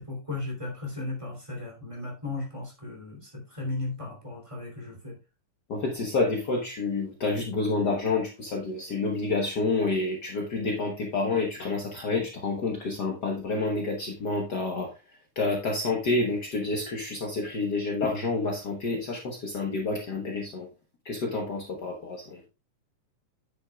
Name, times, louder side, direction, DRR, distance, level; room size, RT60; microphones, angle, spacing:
voice 1, 0.0-5.2, left 2 dB, 10° right, -1 dB, 2.5 m, -36 dB
voice 2, 5.7-14.9 15.3-20.7 21.0-22.4, left 3 dB, 75° left, 1 dB, 0.9 m, -29 dB
9.2 x 8.2 x 2.3 m, 0.27 s
omnidirectional pair, 3.8 m